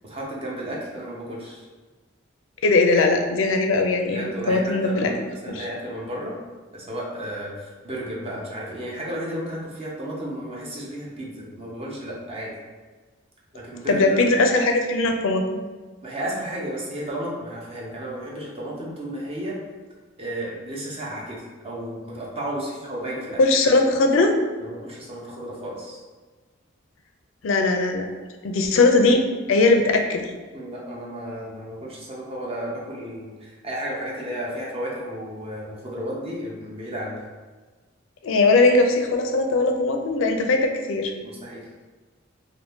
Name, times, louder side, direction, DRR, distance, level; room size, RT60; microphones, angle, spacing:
voice 1, 0.0-1.7 4.1-6.3 6.7-12.5 13.5-14.2 16.0-19.6 20.2-23.4 24.6-26.0 30.5-37.2 41.2-41.7, equal, 30° right, -4 dB, 0.7 m, -33 dB
voice 2, 2.6-5.1 5.5-5.7 13.9-15.4 23.4-24.3 27.4-28.1 28.4-30.3 38.2-41.1, left 3 dB, 80° left, 4 dB, 0.4 m, -20 dB
2.7 x 2.5 x 3.5 m, 1.3 s
head